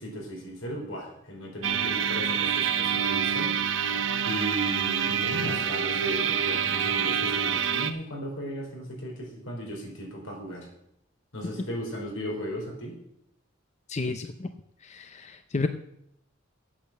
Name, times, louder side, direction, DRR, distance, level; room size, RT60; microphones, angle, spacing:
voice 1, 0.0-3.5 4.2-10.7 11.3-12.9, equal, 85° left, 0 dB, 4.3 m, -36 dB
sound 1, 1.6-7.9, right 7 dB, 70° right, 0.8 m, -27 dB
voice 2, 13.9-14.5 14.8-15.7, left 3 dB, 35° left, 8 dB, 0.5 m, -31 dB
8.6 x 8.4 x 7.4 m, 0.76 s
head